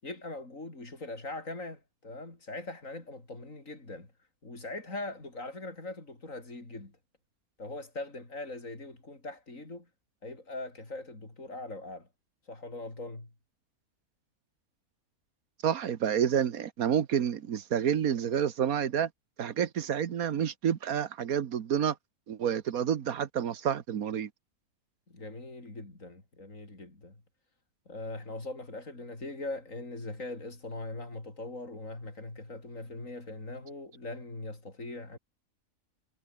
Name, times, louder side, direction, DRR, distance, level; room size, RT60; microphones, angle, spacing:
voice 1, 0.0-4.1 4.4-6.9 7.6-9.9 10.2-12.1 12.4-13.3 25.1-27.2 27.9-35.2, left 2 dB, 65° left, 5.7 m, -41 dB
voice 2, 15.6-19.1 19.4-21.9 22.3-24.3, right 8 dB, 85° right, 1.6 m, -29 dB
omnidirectional pair, 1.5 m